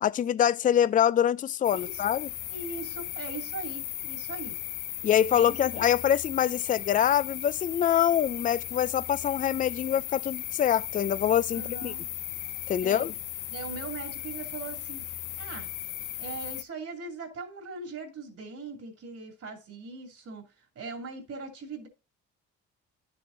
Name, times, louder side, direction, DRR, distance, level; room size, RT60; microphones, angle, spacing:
voice 1, 0.0-2.3 5.0-11.9 12.7-13.1, left 10 dB, 30° left, 0.3 m, -25 dB
sound 1, 1.6-16.6, left 13 dB, 80° left, 0.7 m, -37 dB
voice 2, 1.7-2.0 2.5-4.6 5.3-5.9 11.5-12.1 12.8-13.1 13.5-15.0 15.4-15.7 16.2-21.9, right 4 dB, 55° right, 2.7 m, -40 dB
10.5 x 6.9 x 2.6 m
cardioid pair, 90°, 30 cm